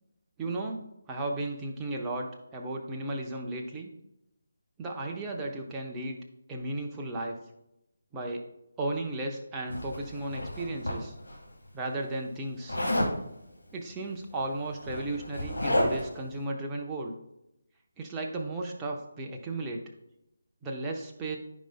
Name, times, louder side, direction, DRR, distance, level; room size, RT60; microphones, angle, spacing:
voice 1, 0.4-0.8 1.1-3.9 4.8-6.2 6.5-7.4 8.1-8.4 8.8-11.1 11.7-12.8 13.7-17.1 18.0-19.8 20.6-21.4, right 2 dB, 15° right, 0 dB, 0.9 m, -35 dB
Zipper (clothing), 9.7-11.4 12.7-13.2 14.3-14.4 14.7-16.2, left 1 dB, 75° left, 2.6 m, -30 dB
13.5 x 5.3 x 2.2 m, 0.86 s
figure-of-eight pair, 150°, 0 cm